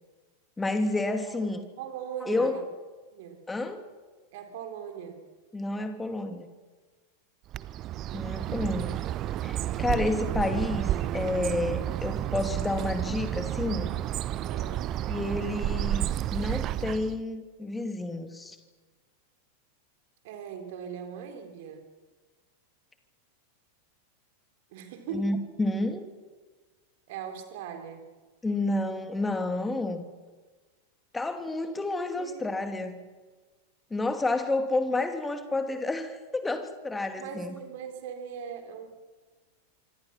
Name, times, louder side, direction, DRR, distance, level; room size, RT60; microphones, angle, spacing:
voice 1, 0.6-1.6 2.3-2.6 3.5-3.8 5.5-6.5 8.1-9.0 9.4-13.9 15.1-18.6 25.1-26.0 28.4-30.0 31.1-33.0 33.9-37.5, left 2 dB, 10° left, 7 dB, 2.7 m, -30 dB
voice 2, 1.8-2.6 3.1-3.4 4.3-5.2 8.4-9.1 14.4-14.8 20.2-21.9 24.7-25.3 27.1-28.1 32.1-32.5 37.2-38.9, right 7 dB, 50° right, 6 dB, 4.0 m, -40 dB
Bird, 7.5-17.2, right 13 dB, 35° right, 0.8 m, -31 dB
26.5 x 25.0 x 6.0 m, 1.3 s
figure-of-eight pair, 90°, 0 cm